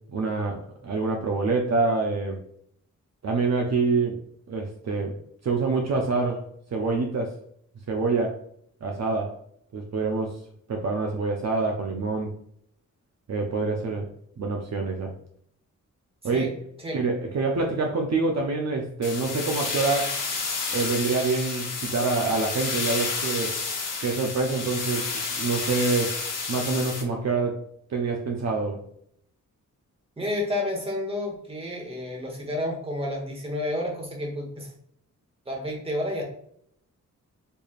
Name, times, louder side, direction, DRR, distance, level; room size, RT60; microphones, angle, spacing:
voice 1, 0.1-2.4 3.2-4.2 4.5-5.2 5.4-6.4 6.7-7.4 7.9-8.4 8.8-9.4 9.7-10.4 10.7-12.3 13.3-14.1 14.4-15.1 16.2-16.6 16.9-20.2 20.7-23.6 24.0-26.2 26.5-27.6 27.9-28.8, right 3 dB, 55° right, 1 dB, 0.7 m, -26 dB
sound 1, 19.0-27.0, left 4 dB, 85° left, 1.1 m, -30 dB
voice 2, 30.2-34.7 35.5-36.2, left 1 dB, 20° right, 0 dB, 1.2 m, -30 dB
4.5 x 3.3 x 2.4 m, 0.68 s
wide cardioid pair, 150°, 31 cm